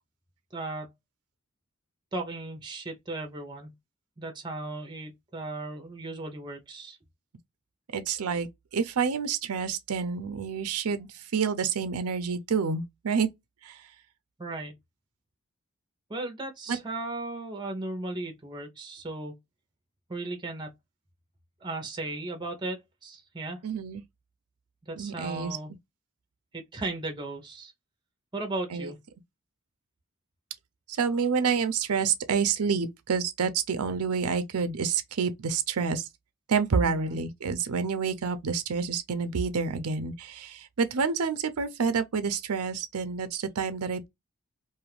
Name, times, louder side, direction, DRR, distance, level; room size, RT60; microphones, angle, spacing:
voice 1, 0.5-0.9 2.1-3.7 4.2-7.0 14.4-14.8 16.1-19.4 20.1-20.7 21.6-23.6 24.8-25.7 26.5-27.7 28.3-29.0 36.8-37.2, right 2 dB, 20° right, 0.7 m, -36 dB
voice 2, 7.9-13.3 13.6-13.8 16.7-16.8 23.6-24.0 25.0-25.6 28.7-28.9 30.9-36.1 36.5-44.1, right 5 dB, 85° right, 0.6 m, -28 dB
2.6 x 2.4 x 3.2 m
head